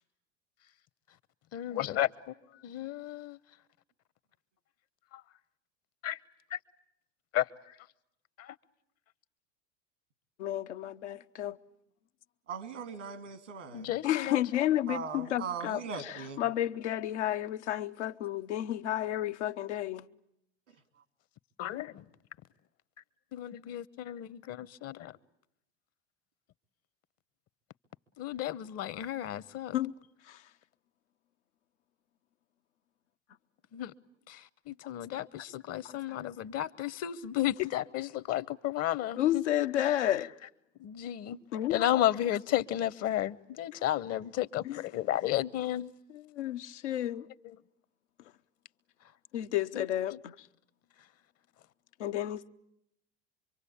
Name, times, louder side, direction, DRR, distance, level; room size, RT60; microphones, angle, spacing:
voice 1, 1.5-2.1 2.6-3.4 5.1-5.2 6.0-6.2 6.5-6.6 7.3-7.5 8.4-8.5 13.7-14.6 21.6-22.1 23.3-25.1 28.2-29.8 33.7-33.9 34.3-39.4 39.8-40.5 40.8-41.4 41.7-45.9 47.4-47.6 49.7-50.2, left 13 dB, 45° left, 1.0 m, -33 dB
voice 2, 10.4-11.6 14.0-15.8 16.4-20.1 29.7-29.9 35.8-36.2 39.2-40.3 41.5-42.0 44.6-44.8 46.1-47.3 49.3-50.3 52.0-52.5, left 12 dB, 75° left, 0.9 m, -31 dB
voice 3, 12.5-13.9 14.9-16.4, right 6 dB, 85° right, 2.6 m, -39 dB
26.0 x 24.0 x 8.6 m
hypercardioid pair, 80°, 35 cm